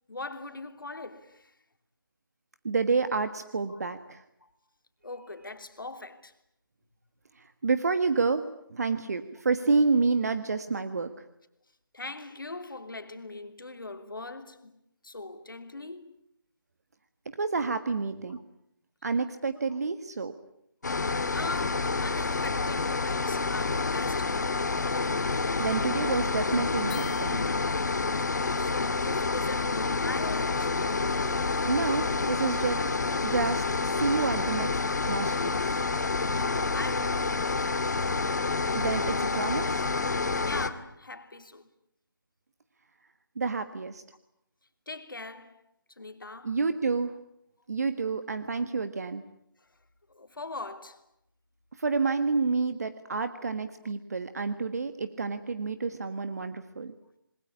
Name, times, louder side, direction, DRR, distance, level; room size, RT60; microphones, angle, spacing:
voice 1, 0.1-1.5 3.7-3.8 4.4-4.5 5.0-6.3 11.9-16.1 21.3-24.7 28.5-30.8 36.2-37.6 40.4-41.7 44.9-45.6 46.0-46.6 50.1-51.0, left 3 dB, 70° left, 3.2 m, -41 dB
voice 2, 2.6-4.2 7.4-8.4 8.7-11.2 17.3-18.4 19.0-20.3 25.6-27.4 31.6-32.8 33.2-34.7 35.1-35.8 38.7-39.9 43.3-44.0 46.4-47.1 47.7-49.2 51.8-56.9, right 4 dB, 45° right, 1.5 m, -29 dB
sound 1, 20.8-40.7, left 4 dB, 50° left, 2.1 m, -28 dB
sound 2, 26.9-28.0, left 13 dB, 10° left, 1.1 m, -47 dB
28.0 x 21.0 x 9.9 m
figure-of-eight pair, 160°, 12 cm